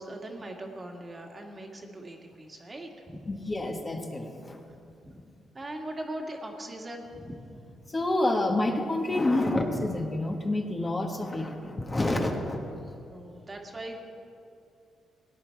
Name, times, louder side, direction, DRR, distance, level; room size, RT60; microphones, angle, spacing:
voice 1, 0.0-3.4 5.0-5.2 5.5-7.6 12.6-12.7 13.1-14.0, right 1 dB, 30° right, 2 dB, 1.8 m, -40 dB
voice 2, 3.3-4.6 7.9-12.6, left 2 dB, 30° left, 2 dB, 1.6 m, -28 dB
17.5 x 10.0 x 4.7 m, 2.5 s
cardioid pair, 70°, 0 cm